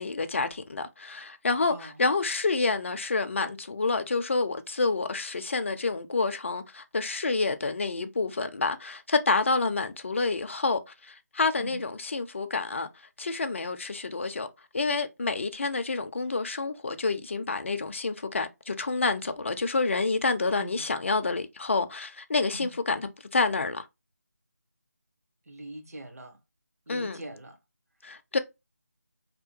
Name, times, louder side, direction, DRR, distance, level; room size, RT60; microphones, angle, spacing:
voice 1, 0.0-12.9 13.2-14.5 14.7-23.8 26.9-27.2 28.0-28.4, left 3 dB, 45° left, 0.4 m, -28 dB
voice 2, 1.7-2.0 11.6-11.8 20.5-20.9 22.5-22.7 25.5-26.4 26.9-27.6, right 1 dB, 60° right, 0.8 m, -42 dB
2.8 x 2.2 x 2.5 m
figure-of-eight pair, 165°, 9 cm